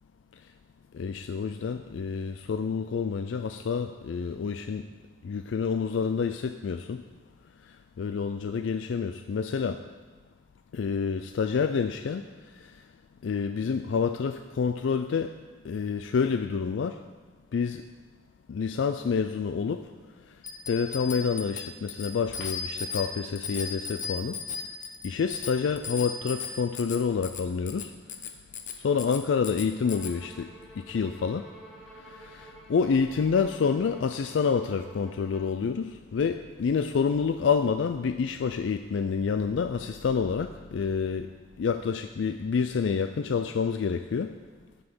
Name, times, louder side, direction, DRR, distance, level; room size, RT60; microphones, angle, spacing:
voice 1, 0.9-4.9 5.2-7.0 8.0-9.8 10.7-12.2 12.6-12.7 13.2-15.3 15.6-17.0 17.5-17.8 18.5-19.9 20.7-24.4 25.0-27.9 28.8-30.5 30.8-31.5 32.0-41.3 41.6-44.3, left 5 dB, 75° left, 9 dB, 0.4 m, -28 dB
Bicycle bell, 20.4-30.1, left 5 dB, 45° left, 0.7 m, -37 dB
Bowed string instrument, 29.8-35.6, right 1 dB, 5° left, 1.4 m, -50 dB
11.5 x 5.5 x 6.1 m, 1.4 s
head